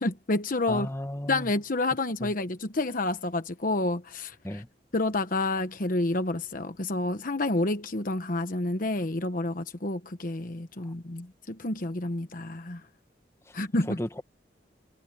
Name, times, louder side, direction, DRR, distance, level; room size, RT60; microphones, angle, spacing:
voice 1, 0.0-0.9 1.3-4.6 4.9-12.8 13.5-14.0, left 2 dB, 50° left, 1.1 m, -29 dB
voice 2, 0.7-1.5 2.2-2.3 4.4-4.7 13.9-14.2, left 1 dB, 15° left, 1.7 m, -34 dB
head